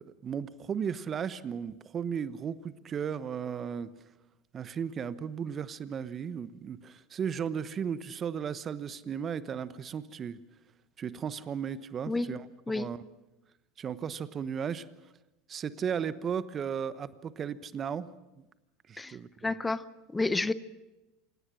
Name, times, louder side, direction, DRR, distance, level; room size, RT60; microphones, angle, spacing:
voice 1, 0.0-3.9 4.5-10.4 11.0-12.5 12.7-13.0 13.8-14.9 15.5-18.1 18.9-19.5, right 7 dB, 35° right, 1.1 m, -35 dB
voice 2, 12.1-12.4 12.7-12.9 19.0-19.2 19.4-19.9 20.1-20.5, left 3 dB, 15° left, 0.8 m, -30 dB
28.0 x 17.5 x 6.3 m
hypercardioid pair, 80°, 0 cm